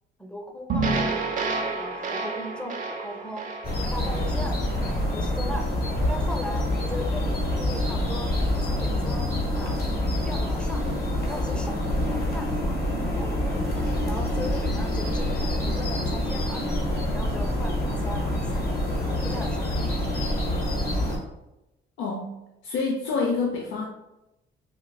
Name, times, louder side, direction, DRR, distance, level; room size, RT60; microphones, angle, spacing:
voice 1, 0.2-1.2 1.4-3.4 3.8-5.7 6.1-9.9 10.2-10.9 11.3-12.8 13.2-16.8 17.1-18.6 18.9-19.8, left 1 dB, 5° left, 3 dB, 0.5 m, -38 dB
sound 1, 0.7-5.0, right 3 dB, 40° right, 0.5 m, -29 dB
sound 2, 3.6-21.2, left 1 dB, 50° left, 1.2 m, -26 dB
voice 2, 22.0-22.4 22.6-23.9, left 4 dB, 85° left, -1 dB, 0.5 m, -27 dB
4.4 x 2.5 x 2.2 m, 0.94 s
cardioid pair, 90°, 20 cm